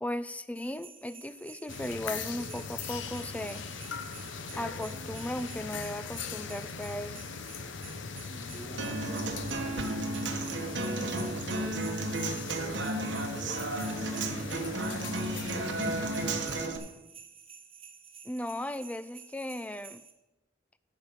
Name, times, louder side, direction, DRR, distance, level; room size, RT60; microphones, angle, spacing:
voice 1, 0.0-3.7 4.5-7.2 18.2-20.0, left 1 dB, 10° left, 14 dB, 0.3 m, -36 dB
sound 1, 0.5-20.1, right 7 dB, 30° right, 1.1 m, -51 dB
sound 2, 1.7-16.7, left 5 dB, 90° left, 0.8 m, -40 dB
voice 2, 8.3-12.1 12.8-14.7 15.1-17.0, equal, 40° left, -4 dB, 1.8 m, -49 dB
Human voice / Acoustic guitar, 8.8-16.8, right 2 dB, 70° right, 1.1 m, -33 dB
10.5 x 5.2 x 7.6 m, 1.0 s
head